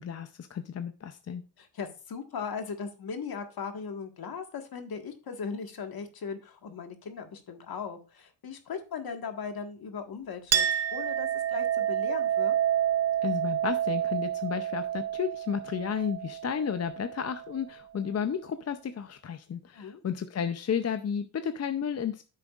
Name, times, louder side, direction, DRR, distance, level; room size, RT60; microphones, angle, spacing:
voice 1, 0.0-1.4 13.2-22.2, left 7 dB, 40° left, 9 dB, 0.6 m, -32 dB
voice 2, 1.6-12.5 19.7-20.0, left 6 dB, 60° left, 5 dB, 1.6 m, -38 dB
Chink clink, 10.5-17.6, right 10 dB, 40° right, 0.6 m, -29 dB
10.0 x 7.4 x 2.4 m, 0.34 s
cardioid pair, 90°, 40 cm